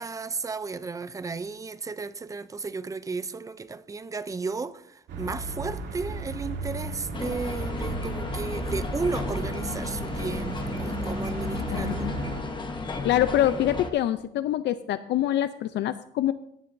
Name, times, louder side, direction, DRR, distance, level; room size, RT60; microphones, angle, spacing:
voice 1, 0.0-12.1, right 4 dB, 15° right, 0.4 m, -34 dB
sound 1, 5.1-12.4, right 2 dB, 85° right, 2.7 m, -34 dB
sound 2, 7.1-13.9, left 3 dB, 25° left, 0.9 m, -34 dB
voice 2, 11.7-12.1 13.0-16.3, left 12 dB, 70° left, 0.5 m, -25 dB
17.0 x 10.5 x 2.6 m
cardioid pair, 155°, 19 cm